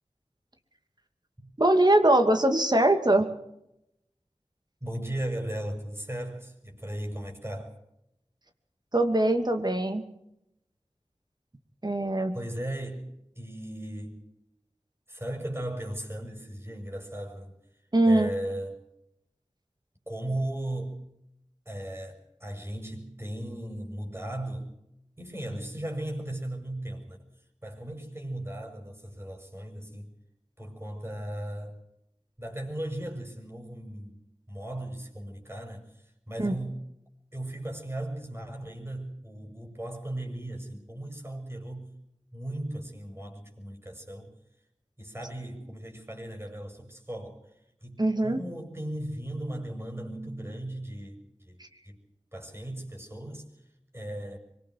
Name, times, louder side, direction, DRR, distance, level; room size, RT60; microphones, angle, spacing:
voice 1, 1.6-3.3 8.9-10.0 11.8-12.3 17.9-18.3 36.4-36.5 48.0-48.4, right 1 dB, 40° right, 6 dB, 2.5 m, -22 dB
voice 2, 4.8-7.8 12.3-13.1 13.3-14.2 15.1-17.5 18.0-18.8 20.1-21.0 21.6-24.7 25.2-27.2 27.6-30.1 30.6-31.8 32.4-34.2 34.5-36.8 37.3-41.9 42.3-44.3 45.0-47.5 47.8-52.0 52.3-53.6 53.9-54.4, right 1 dB, 20° right, 2 dB, 6.7 m, -37 dB
25.0 x 23.5 x 4.8 m, 0.83 s
wide cardioid pair, 40°, 11 cm